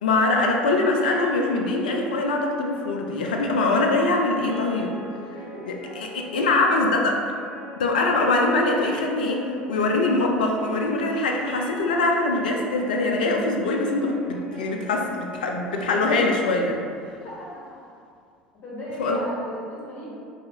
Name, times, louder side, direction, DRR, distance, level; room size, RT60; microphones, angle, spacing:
voice 1, 0.0-4.9 6.3-6.9 7.8-16.8 19.0-19.2, left 2 dB, 70° left, 1 dB, 0.3 m, -23 dB
sound 1, 1.0-17.1, equal, 55° right, 0.5 m, -43 dB
voice 2, 6.3-6.9 7.6-7.7 17.2-17.9 18.6-20.2, left 1 dB, 40° left, -7 dB, 1.1 m, -37 dB
2.7 x 2.4 x 2.7 m, 2.3 s
figure-of-eight pair, 65°, 5 cm